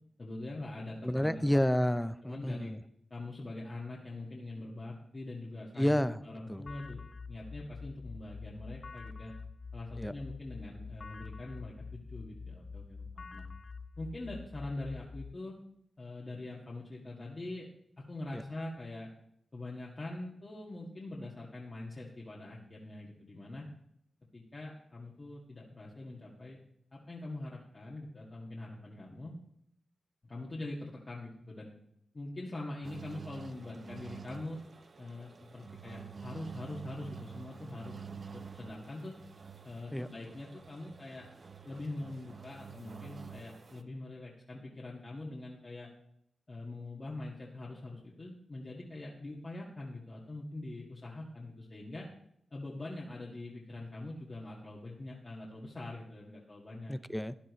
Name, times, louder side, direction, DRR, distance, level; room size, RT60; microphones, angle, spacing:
voice 1, 0.2-1.6 2.2-2.7 3.1-6.0 6.2-7.0 7.3-9.3 9.7-13.5 14.0-15.6 16.0-17.7 18.0-19.1 19.5-23.7 24.3-26.6 26.9-29.3 30.2-31.7 32.1-34.7 35.0-39.1 39.6-41.3 41.6-45.9 46.5-52.1 52.5-56.9, left 2 dB, 45° left, -5 dB, 2.1 m, -43 dB
voice 2, 1.0-2.8 5.8-6.2 6.5-6.6 10.0-10.1 18.3-18.4 39.9-40.1 56.9-57.3, equal, 5° left, 14 dB, 0.6 m, -30 dB
sound 1, 6.7-15.3, left 4 dB, 60° left, 0.4 m, -46 dB
sound 2, 32.8-43.8, right 6 dB, 55° right, 0.8 m, -48 dB
13.5 x 10.0 x 3.2 m, 0.74 s
cardioid pair, 50°, 0 cm